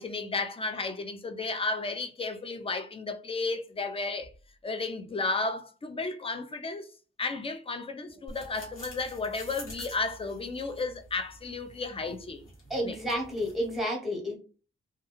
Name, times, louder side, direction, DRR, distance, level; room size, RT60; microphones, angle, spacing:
voice 1, 0.0-4.3 4.6-6.9 7.2-12.5 12.8-13.0, left 3 dB, 25° left, 0.4 m, -33 dB
sound 1, 8.3-13.8, equal, 85° left, 1.1 m, -48 dB
voice 2, 12.7-14.3, equal, ahead, 0.9 m, -30 dB
2.3 x 2.2 x 2.9 m
wide cardioid pair, 135°, 21 cm